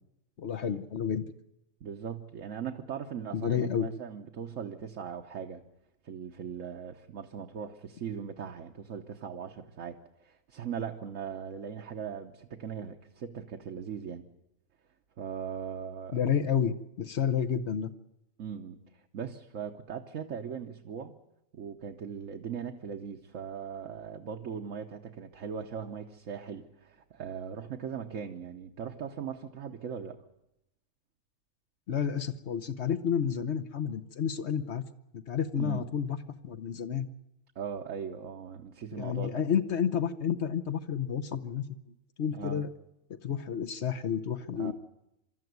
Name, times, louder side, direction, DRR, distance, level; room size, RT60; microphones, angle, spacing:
voice 1, 0.4-1.2 3.3-3.9 16.1-17.9 31.9-34.8 35.1-36.2 36.4-37.1 38.9-41.6 42.2-42.7 43.2-44.7, left 8 dB, 55° left, 9 dB, 1.2 m, -30 dB
voice 2, 1.8-5.6 6.0-14.2 15.2-16.2 18.4-21.1 21.5-30.2 35.6-35.9 37.5-39.4 42.3-42.6 44.6-44.7, right 7 dB, 65° right, 3 dB, 1.4 m, -39 dB
24.5 x 13.0 x 9.4 m, 0.89 s
omnidirectional pair, 1.4 m